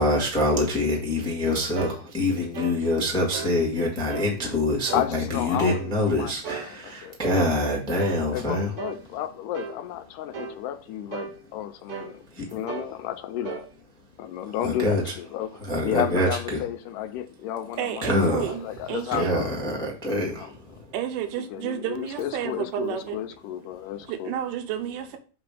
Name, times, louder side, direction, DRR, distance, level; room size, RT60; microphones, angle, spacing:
voice 1, 0.0-8.7 12.3-12.6 14.4-15.1 15.6-16.6 18.0-18.5 19.1-20.9 23.9-24.0, left 1 dB, 5° left, 0.3 m, -25 dB
sound 1, 1.8-2.0 2.5-2.8 3.3-3.6 4.1-4.3 4.9-5.1 5.7-5.9 6.4-6.7 7.2-7.4 8.0-8.2 8.8-9.0 9.5-9.8 10.3-10.6 11.1-11.4 11.9-12.2 12.7-12.9 13.4-13.7, right 8 dB, 70° right, 1.4 m, -35 dB
voice 2, 4.9-7.2 8.3-12.2 12.5-13.7 14.2-19.5 20.4-20.5 21.5-24.4, left 11 dB, 85° left, 2.2 m, -32 dB
voice 3, 17.8-19.4 20.9-23.2 24.1-25.2, right 10 dB, 90° right, 2.2 m, -31 dB
7.4 x 3.0 x 4.9 m
omnidirectional pair, 3.7 m